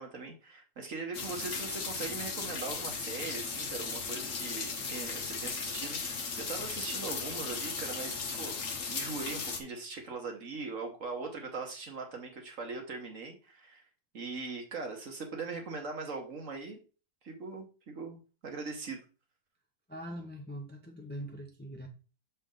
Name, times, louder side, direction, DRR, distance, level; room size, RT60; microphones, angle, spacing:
voice 1, 0.0-13.9 14.1-16.8 17.2-19.0, right 4 dB, 55° right, 1.6 m, -40 dB
sound 1, 1.1-9.6, left 5 dB, 55° left, 1.2 m, -36 dB
voice 2, 19.9-21.9, equal, 10° left, 0.8 m, -42 dB
6.8 x 4.2 x 3.8 m
omnidirectional pair, 1.7 m